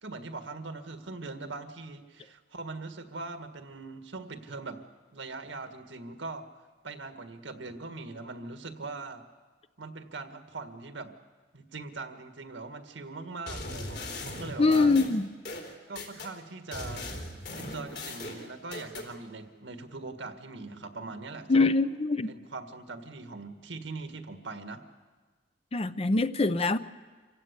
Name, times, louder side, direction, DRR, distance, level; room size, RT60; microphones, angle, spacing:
voice 1, 0.0-4.8 5.1-6.5 6.8-9.2 9.8-11.1 11.5-15.0 15.9-17.1 17.6-21.7 22.3-24.8, right 3 dB, 90° right, 1.7 m, -41 dB
sound 1, 13.5-16.3 16.7-19.1, left 2 dB, 60° left, 3.8 m, -39 dB
voice 2, 14.6-15.3 21.5-22.3 25.7-26.8, left 3 dB, 35° left, 0.6 m, -24 dB
26.5 x 16.5 x 8.2 m
head